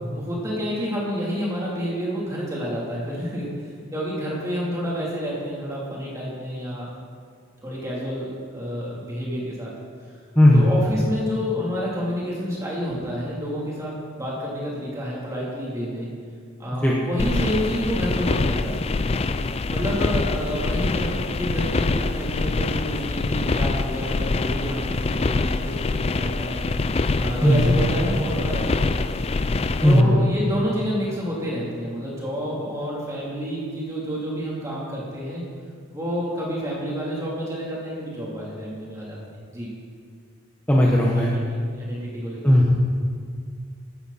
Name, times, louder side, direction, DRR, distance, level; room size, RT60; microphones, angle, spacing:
voice 1, 0.1-3.5 3.9-6.9 7.6-9.7 10.5-16.1 16.6-19.0 19.7-26.7 27.2-29.1 29.8-35.4 35.9-39.7 41.1-42.4, equal, 15° right, -6 dB, 3.4 m, -29 dB
voice 2, 10.4-10.7 16.8-16.9 27.4-27.7 29.8-30.1 40.7-41.3 42.4-42.6, left 1 dB, 10° left, -4 dB, 1.2 m, -16 dB
sound 1, 17.2-30.0, left 3 dB, 30° left, 0.4 m, -25 dB
16.0 x 13.0 x 4.3 m, 2.1 s
head